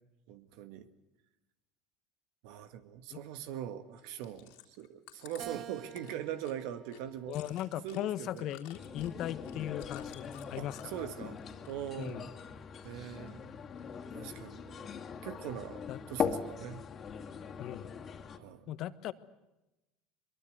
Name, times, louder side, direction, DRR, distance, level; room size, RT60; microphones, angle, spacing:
voice 1, 0.3-0.9 2.4-7.4 7.8-8.5 10.5-11.4 11.7-12.4 12.8-13.5 14.1-14.9 15.2-16.9 18.3-18.7, right 10 dB, 75° right, 11 dB, 1.9 m, -42 dB
Chewing mastication, 4.0-11.1 11.4-12.1 12.4-13.3 13.8-13.9, left 15 dB, 75° left, 3.3 m, -54 dB
Keyboard (musical), 5.4-7.9 8.5-9.7, right 12 dB, 50° right, 1.0 m, -50 dB
voice 2, 7.3-10.8 12.0-12.2 15.9-16.0 17.6-17.9 18.7-19.1, left 12 dB, 60° left, 15 dB, 1.3 m, -38 dB
sound 1, 8.7-18.4, left 6 dB, 40° left, 2.6 m, -41 dB
23.5 x 23.0 x 8.1 m, 0.97 s
supercardioid pair, 95°, 0 cm